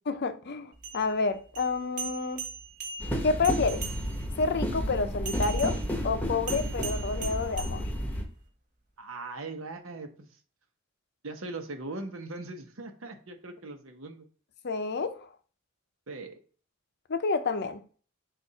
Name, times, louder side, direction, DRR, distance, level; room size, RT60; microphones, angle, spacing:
voice 1, 0.1-2.4 3.2-3.9 4.4-7.9 14.6-15.3 17.1-17.8, left 4 dB, 55° left, 0.6 m, -29 dB
sound 1, 0.7-4.4 5.2-8.4, right 5 dB, 40° right, 1.2 m, -41 dB
sound 2, 3.0-8.2, equal, 10° left, 0.9 m, -32 dB
voice 2, 9.0-10.3 11.2-14.3 16.1-16.4, right 2 dB, 80° right, 1.0 m, -40 dB
6.8 x 2.6 x 5.6 m
head